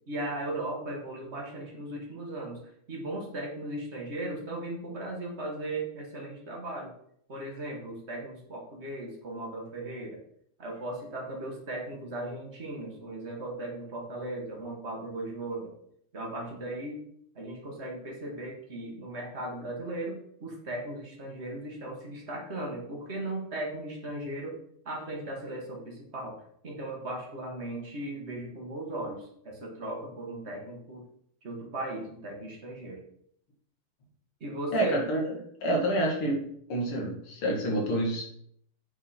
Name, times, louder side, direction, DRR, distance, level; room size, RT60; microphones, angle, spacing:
voice 1, 0.1-2.6 2.9-6.9 7.3-10.2 10.6-15.7 16.1-17.0 17.3-24.6 24.8-26.4 26.6-31.0 31.4-33.0 34.4-35.0, right 1 dB, 30° right, -1 dB, 1.8 m, -37 dB
voice 2, 34.7-35.4 35.6-36.4 36.7-38.2, right 1 dB, 75° left, -1 dB, 2.6 m, -28 dB
8.8 x 4.1 x 4.3 m, 0.67 s
omnidirectional pair, 2.4 m